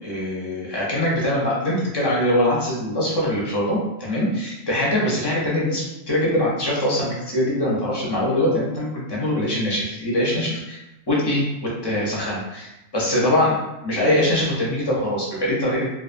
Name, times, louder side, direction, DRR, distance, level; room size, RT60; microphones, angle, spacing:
voice 1, 0.0-10.8 11.1-13.6 13.8-15.9, left 1 dB, 35° left, -5 dB, 0.4 m, -23 dB
2.4 x 2.3 x 2.4 m, 0.94 s
omnidirectional pair, 1.2 m